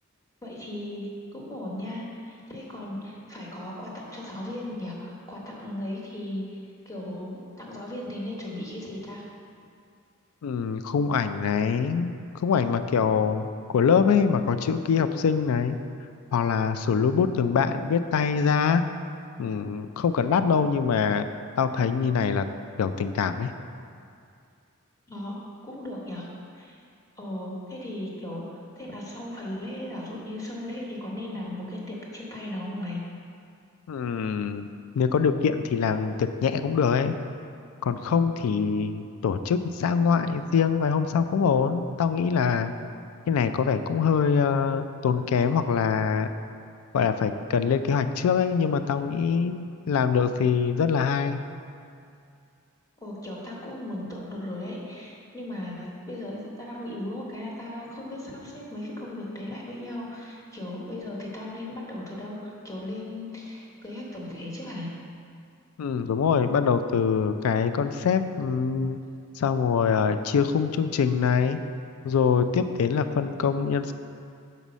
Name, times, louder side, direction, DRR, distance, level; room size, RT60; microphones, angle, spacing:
voice 1, 0.4-6.6 6.8-7.3 7.6-9.2 25.1-25.4 25.6-26.3 26.5-26.8 27.2-28.4 28.8-33.0 53.0-64.9, left 1 dB, 15° left, -4 dB, 1.1 m, -36 dB
voice 2, 10.4-12.1 12.4-15.8 16.3-18.8 19.4-21.3 21.6-22.5 22.8-23.5 33.9-34.7 35.0-37.1 37.8-42.7 43.3-46.3 46.9-51.4 65.8-69.0 69.4-71.6 72.0-73.9, left 6 dB, 85° left, 10 dB, 0.3 m, -24 dB
5.5 x 4.1 x 6.1 m, 2.4 s
head